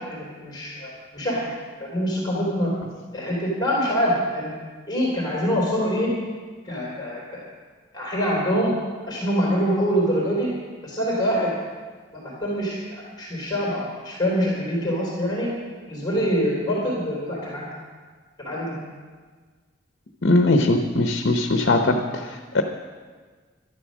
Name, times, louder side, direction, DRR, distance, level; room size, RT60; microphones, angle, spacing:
voice 1, 0.0-1.4 1.8-2.7 3.1-4.5 4.9-6.1 6.6-7.4 7.9-8.8 9.1-10.5 10.8-11.5 12.1-15.5 15.9-17.7 18.4-18.7, equal, 20° left, -5 dB, 3.4 m, -25 dB
voice 2, 20.2-22.6, left 2 dB, 65° left, 5 dB, 0.9 m, -20 dB
12.5 x 11.0 x 6.3 m, 1.5 s
head